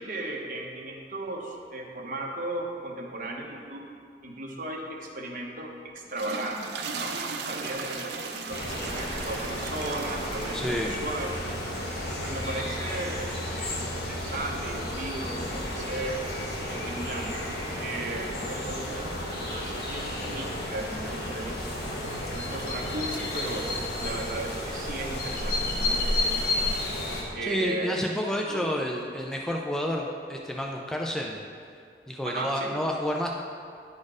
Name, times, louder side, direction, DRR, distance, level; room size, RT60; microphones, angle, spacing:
voice 1, 0.0-3.8 4.2-6.6 6.9-7.1 7.5-11.4 12.2-16.2 16.9-17.3 17.8-21.5 21.8-22.0 22.3-23.6 24.0-26.8 27.3-28.1 28.5-28.8 32.2-32.7, right 2 dB, 50° right, -1 dB, 1.0 m, -36 dB
sound 1, 6.0-14.3, right 4 dB, 80° right, 0.6 m, -39 dB
sound 2, 8.5-27.2, left 1 dB, 65° left, 1.3 m, -32 dB
voice 2, 10.5-10.9 27.4-31.4 32.1-33.3, equal, 5° left, -1 dB, 0.4 m, -30 dB
10.5 x 4.3 x 4.9 m, 2.3 s
head